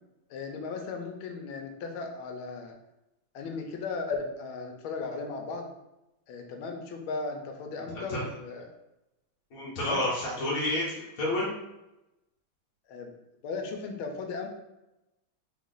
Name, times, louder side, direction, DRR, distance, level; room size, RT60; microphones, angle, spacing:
voice 1, 0.3-2.8 3.3-5.7 6.3-8.7 9.8-10.0 12.9-13.1 13.4-14.5, left 4 dB, 80° left, 3 dB, 1.5 m, -36 dB
voice 2, 9.5-11.5, left 1 dB, 50° left, -6 dB, 1.3 m, -30 dB
4.1 x 3.1 x 3.9 m, 0.93 s
omnidirectional pair, 2.2 m